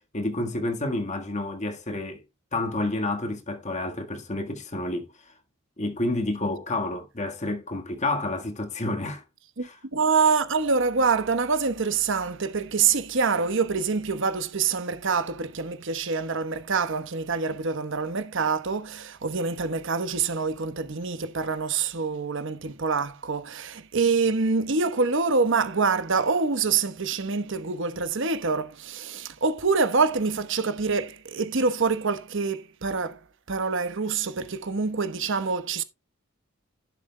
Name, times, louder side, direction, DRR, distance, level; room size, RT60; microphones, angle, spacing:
voice 1, 0.0-2.2 2.5-5.0 5.8-9.2, left 2 dB, 35° left, 1.6 m, -29 dB
voice 2, 9.6-35.8, right 4 dB, 65° right, 1.1 m, -26 dB
11.5 x 10.5 x 2.2 m
head